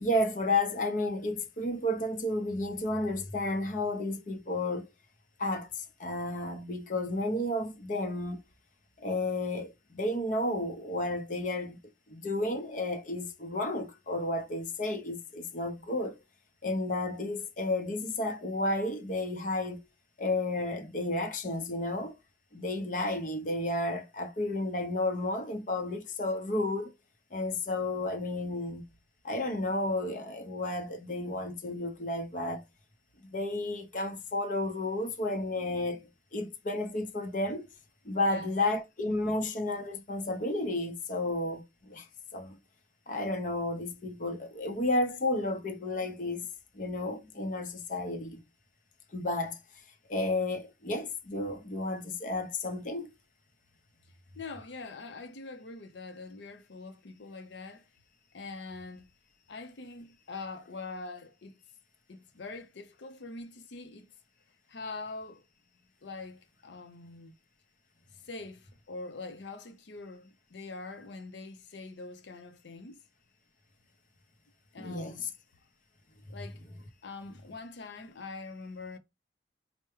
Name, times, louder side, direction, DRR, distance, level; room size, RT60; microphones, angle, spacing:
voice 1, 0.0-4.9 5.4-8.4 9.0-11.8 12.1-16.1 16.6-19.8 20.2-22.1 22.5-26.9 27.3-28.8 29.2-32.6 33.3-37.7 38.0-42.1 42.3-42.6 43.1-46.5 46.7-48.4 49.1-49.6 50.1-53.1 74.8-75.3, left 2 dB, 45° left, 0.7 m, -32 dB
voice 2, 54.3-57.8 58.3-59.1 59.5-61.6 62.1-64.1 64.7-65.4 66.0-67.4 68.2-73.0 74.7-75.3 76.3-76.6 77.0-79.0, left 3 dB, 80° left, 0.6 m, -44 dB
4.5 x 2.1 x 3.1 m
head